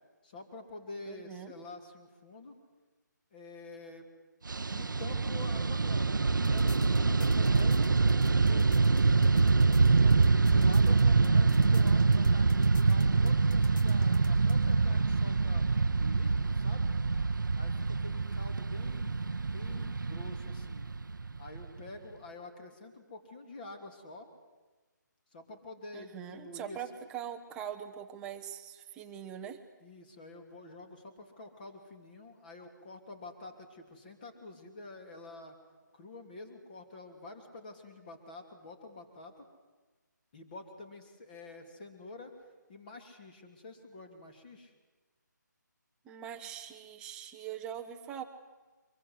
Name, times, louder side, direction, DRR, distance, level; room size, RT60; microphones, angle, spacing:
voice 1, 0.2-2.6 3.3-4.1 4.7-7.8 8.2-15.7 16.0-16.9 17.6-20.9 21.4-24.3 25.3-26.8 29.8-35.6 35.9-39.5 40.3-42.4 42.7-44.7, left 2 dB, 25° left, 5 dB, 2.9 m, -48 dB
voice 2, 1.1-1.5 25.9-29.6 46.0-48.2, right 9 dB, 10° right, 5 dB, 1.0 m, -42 dB
Fixed-wing aircraft airplane, 4.5-21.9, right 4 dB, 85° right, 0.9 m, -26 dB
sound 1, 6.4-14.6, equal, 80° left, 4.3 m, -42 dB
24.0 x 22.0 x 8.0 m, 1.3 s
hypercardioid pair, 165°, 10 cm